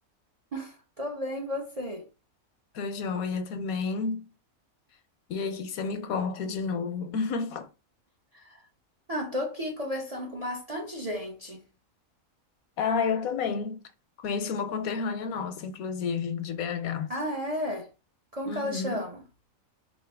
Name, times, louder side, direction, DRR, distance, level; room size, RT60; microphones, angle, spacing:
voice 1, 0.5-2.1 8.3-8.6 9.1-11.6 17.1-17.9 18.3-19.2, left 1 dB, 40° right, 0.5 m, -33 dB
voice 2, 2.7-4.3 5.3-7.7 12.8-13.8 14.2-17.1 18.5-19.0, left 5 dB, 85° left, 1.1 m, -30 dB
4.0 x 3.1 x 3.4 m
omnidirectional pair, 1.5 m